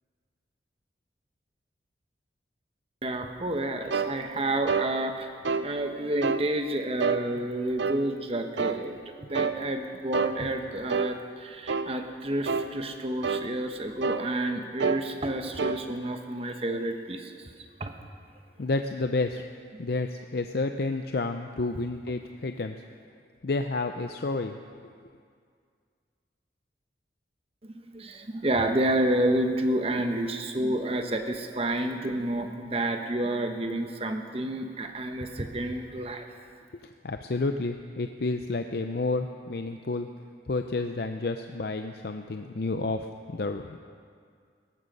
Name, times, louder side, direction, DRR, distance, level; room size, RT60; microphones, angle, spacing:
voice 1, 3.0-5.3 5.6-17.5 17.8-17.9 27.6-36.3, right 1 dB, 35° right, 5 dB, 1.1 m, -30 dB
sound 1, 3.9-4.1 4.7-4.9 5.4-5.7 6.2-6.5 7.0-7.2 7.8-8.0 8.6-8.8 9.3-9.6 10.1-10.4 10.9-11.1 11.7-11.9 12.5-12.7 13.2-13.5 14.0-14.3 14.8-15.0 15.6-15.8, right 5 dB, 75° right, 0.6 m, -27 dB
voice 2, 18.6-19.4 19.8-22.8 23.4-24.6 36.7-40.1 40.5-43.8, left 3 dB, 60° left, 7 dB, 0.5 m, -30 dB
18.5 x 13.5 x 5.4 m, 2.1 s
head